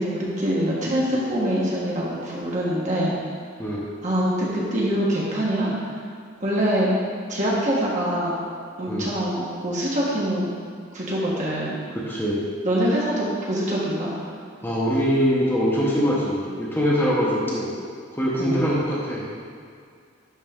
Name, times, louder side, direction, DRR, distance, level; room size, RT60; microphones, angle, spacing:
voice 1, 0.0-3.2 4.0-5.7 6.4-6.9 7.3-8.4 8.8-10.5 10.9-11.7 12.6-14.1 18.4-18.6, equal, 40° right, -5 dB, 1.4 m, -24 dB
voice 2, 11.9-12.4 14.6-17.7 18.1-19.3, equal, 10° left, -6 dB, 1.1 m, -23 dB
10.5 x 3.7 x 3.7 m, 2.2 s
head